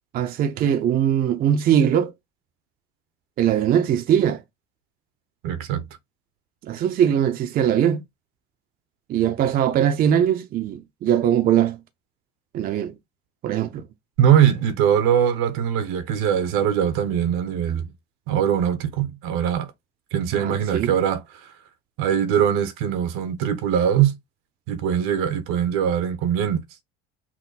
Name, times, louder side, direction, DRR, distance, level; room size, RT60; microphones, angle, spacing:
voice 1, 0.1-2.1 3.4-4.4 6.7-8.0 9.1-11.8 12.5-12.9 13.4-13.8 20.3-20.9, right 9 dB, 45° right, 0.6 m, -21 dB
voice 2, 5.4-5.8 14.2-17.9 18.3-19.7 20.1-21.5 22.0-24.1 24.7-26.6, right 9 dB, 80° right, 1.0 m, -21 dB
5.9 x 2.2 x 4.0 m
cardioid pair, 125°, 21 cm